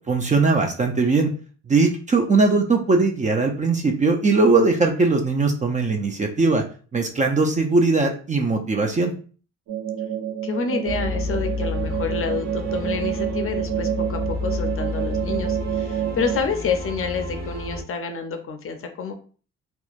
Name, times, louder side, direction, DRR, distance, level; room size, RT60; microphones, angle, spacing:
voice 1, 0.1-1.3 1.7-6.6 6.9-9.1, right 3 dB, 25° right, 3 dB, 0.4 m, -20 dB
sound 1, 9.7-16.4, right 10 dB, 75° right, 0.5 m, -28 dB
voice 2, 10.4-19.1, left 5 dB, 45° left, 6 dB, 0.5 m, -28 dB
sound 2, 10.9-17.8, left 3 dB, 60° right, 1.1 m, -30 dB
2.9 x 2.2 x 2.4 m, 0.40 s
cardioid pair, 90°, 30 cm